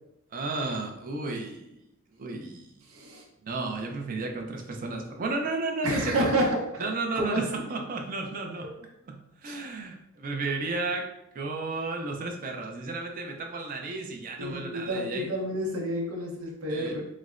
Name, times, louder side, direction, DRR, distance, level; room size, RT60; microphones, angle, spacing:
voice 1, 0.3-1.8 2.1-2.7 3.4-6.3 6.8-8.7 9.0-11.1 11.3-15.3 16.7-17.0, right 3 dB, 40° right, 2 dB, 0.4 m, -33 dB
voice 2, 2.9-3.2 5.8-6.9 7.1-7.5 9.4-9.6 14.4-17.1, right 1 dB, 75° right, 0 dB, 0.7 m, -29 dB
3.9 x 2.0 x 2.4 m, 0.86 s
head